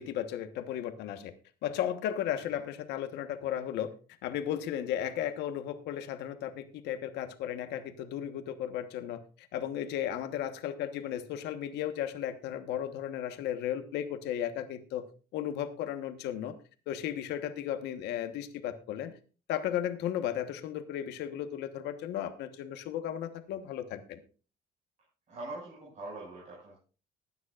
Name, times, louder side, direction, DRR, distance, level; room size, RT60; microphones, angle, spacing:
voice 1, 0.0-1.3 1.6-3.9 4.2-15.0 15.3-16.5 16.9-19.2 19.5-24.2, left 10 dB, 85° left, 9 dB, 1.3 m, -35 dB
voice 2, 25.3-26.8, right 2 dB, 45° right, -5 dB, 5.9 m, -43 dB
20.0 x 9.5 x 2.5 m, 0.36 s
cardioid pair, 110°, 17 cm